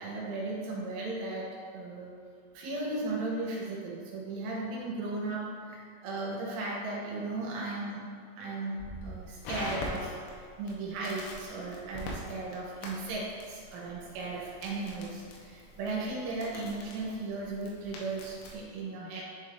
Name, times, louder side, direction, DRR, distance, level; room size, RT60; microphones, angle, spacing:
voice 1, 0.0-2.1 2.6-8.0 8.4-10.2 10.6-19.2, right 2 dB, 80° right, -5 dB, 3.5 m, -36 dB
Crackle, 8.8-18.6, left 1 dB, 85° left, 3.5 m, -44 dB
10.5 x 4.0 x 2.7 m, 2.1 s
omnidirectional pair, 5.7 m